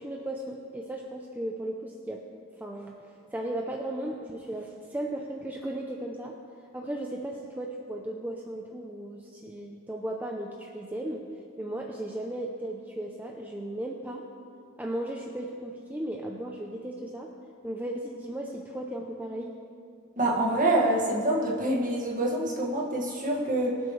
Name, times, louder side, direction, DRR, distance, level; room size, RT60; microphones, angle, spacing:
voice 1, 0.0-2.2 2.6-3.0 3.3-6.3 6.7-11.2 11.6-14.2 14.8-17.3 17.6-19.6, right 1 dB, 10° right, 0 dB, 0.6 m, -36 dB
voice 2, 20.2-23.8, right 1 dB, 40° right, -2 dB, 2.0 m, -26 dB
22.5 x 8.0 x 3.3 m, 2.5 s
head